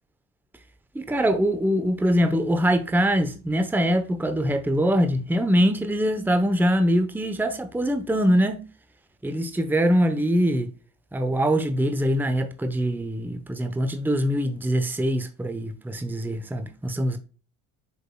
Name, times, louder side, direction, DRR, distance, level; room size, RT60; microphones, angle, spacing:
voice 1, 0.9-8.6 9.2-10.7 11.1-17.2, equal, 5° right, 1.0 m, -23 dB
8.2 x 5.1 x 2.3 m
supercardioid pair, 70°, 38 cm